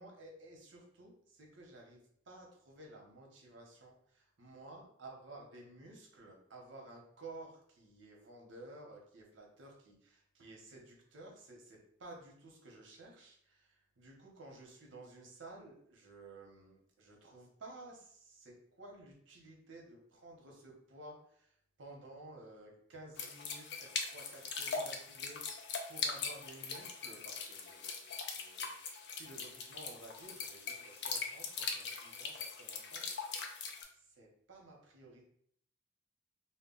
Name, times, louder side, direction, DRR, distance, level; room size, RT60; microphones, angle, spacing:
voice 1, 0.0-28.7 29.1-35.2, right 2 dB, 80° right, 0 dB, 0.7 m, -54 dB
Medium Speed Irregular Dropping Water, 23.2-33.8, left 5 dB, 60° left, 0.4 m, -41 dB
2.2 x 2.1 x 3.7 m, 0.67 s
head